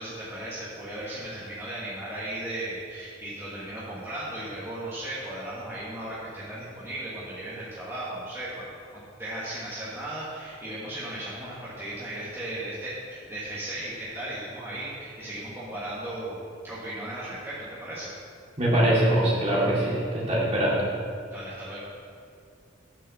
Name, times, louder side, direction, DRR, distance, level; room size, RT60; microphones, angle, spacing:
voice 1, 0.0-8.7 8.9-18.1 21.3-21.8, right 1 dB, 15° right, -10 dB, 1.4 m, -36 dB
voice 2, 18.6-20.8, right 1 dB, 35° right, -6 dB, 2.5 m, -23 dB
8.9 x 5.5 x 6.6 m, 2.4 s
head